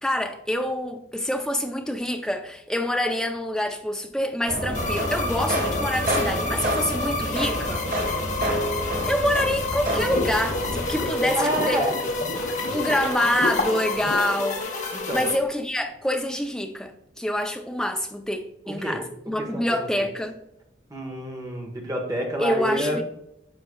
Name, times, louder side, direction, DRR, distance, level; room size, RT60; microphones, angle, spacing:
voice 1, 0.0-7.8 9.1-11.9 12.7-14.8 15.1-20.4 22.4-23.0, left 1 dB, 5° left, 0.5 m, -26 dB
sound 1, 4.5-11.1, equal, 45° right, 1.5 m, -28 dB
sound 2, 4.7-15.4, left 3 dB, 40° left, 0.9 m, -30 dB
sound 3, 9.8-15.2, left 2 dB, 60° left, 1.4 m, -31 dB
voice 2, 11.3-11.9 14.9-15.3 18.7-19.0 19.5-19.8 20.9-23.0, equal, 20° right, 1.3 m, -28 dB
9.6 x 5.7 x 2.3 m
head